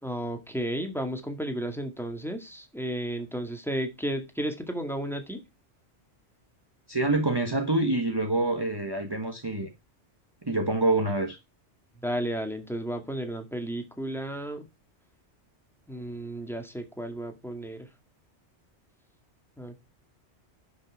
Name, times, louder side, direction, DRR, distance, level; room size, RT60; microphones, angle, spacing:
voice 1, 0.0-5.4 12.0-14.7 15.9-17.9 19.6-19.8, right 1 dB, ahead, 2.1 m, -33 dB
voice 2, 6.9-9.7 10.4-11.4, right 2 dB, 20° right, 1.3 m, -26 dB
11.5 x 6.2 x 4.8 m
omnidirectional pair, 1.2 m